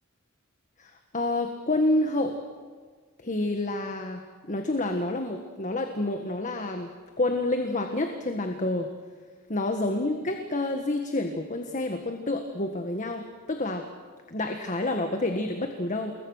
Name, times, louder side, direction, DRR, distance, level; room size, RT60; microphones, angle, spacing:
voice 1, 0.8-2.4 3.2-6.9 7.2-8.9 9.5-13.9 14.3-16.1, left 2 dB, 35° left, 4 dB, 1.6 m, -28 dB
28.5 x 21.5 x 6.5 m, 1.5 s
head